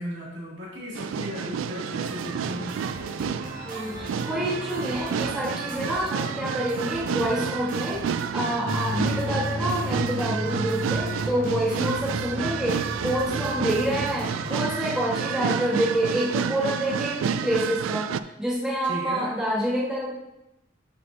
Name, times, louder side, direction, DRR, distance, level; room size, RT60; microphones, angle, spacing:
voice 1, 0.0-2.8 18.8-19.4, left 1 dB, 65° right, -6 dB, 2.7 m, -35 dB
sound 1, 1.0-18.2, right 7 dB, 80° right, 0.3 m, -30 dB
sound 2, 2.0-14.7, right 1 dB, 45° right, 1.3 m, -39 dB
voice 2, 3.6-18.1 18.4-20.3, equal, 5° right, -7 dB, 1.6 m, -27 dB
sound 3, 8.7-15.3, left 2 dB, 30° left, 0.5 m, -35 dB
7.8 x 7.4 x 2.8 m, 0.90 s
head